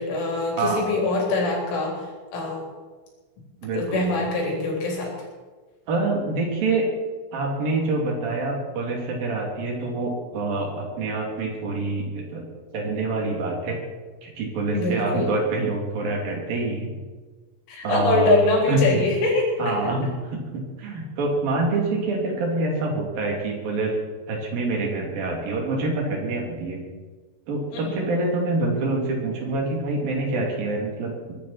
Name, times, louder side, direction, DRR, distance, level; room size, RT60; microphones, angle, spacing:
voice 1, 0.0-2.0 2.3-2.6 3.7-5.1 14.7-15.3 17.7-19.9 27.7-28.0, left 2 dB, 75° left, -1 dB, 6.1 m, -23 dB
voice 2, 3.6-4.1 5.9-6.8 7.3-12.5 12.7-13.8 14.2-16.9 17.8-18.4 18.7-18.8 19.6-24.0 24.3-26.8 27.5-31.3, right 3 dB, 50° right, 0 dB, 4.3 m, -26 dB
22.0 x 12.5 x 4.4 m, 1.3 s
omnidirectional pair, 5.7 m